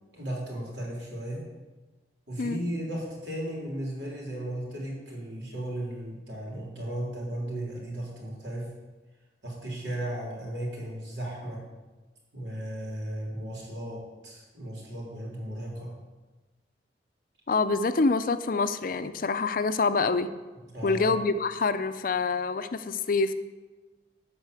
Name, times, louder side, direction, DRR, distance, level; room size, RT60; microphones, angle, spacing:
voice 1, 0.1-1.4 2.3-8.7 9.4-11.6 12.3-16.0 20.7-21.1, right 1 dB, 80° right, -3 dB, 3.6 m, -35 dB
voice 2, 17.5-20.3 20.8-23.3, left 4 dB, 50° left, 11 dB, 0.5 m, -26 dB
12.0 x 4.3 x 8.2 m, 1.2 s
head